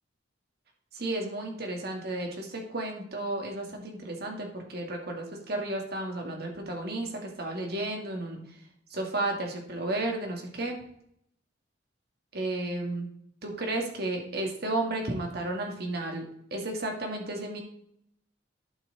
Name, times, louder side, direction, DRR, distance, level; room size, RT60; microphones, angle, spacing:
voice 1, 0.9-8.4 8.9-10.8 12.3-13.1 13.4-16.2 16.5-17.6, right 2 dB, 60° right, 1 dB, 2.2 m, -33 dB
11.0 x 6.0 x 4.1 m, 0.69 s
head